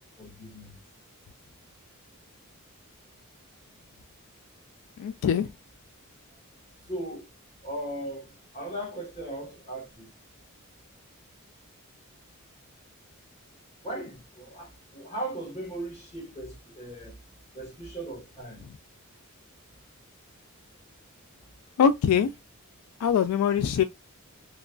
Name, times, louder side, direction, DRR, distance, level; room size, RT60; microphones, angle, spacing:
voice 1, 0.2-0.8 6.9-7.3 7.6-10.1 13.8-17.1 17.5-18.7, right 1 dB, 30° left, 1.4 m, -38 dB
voice 2, 5.0-5.5 21.8-22.3 23.0-23.8, left 7 dB, 75° left, 0.3 m, -23 dB
2.9 x 2.3 x 2.4 m
head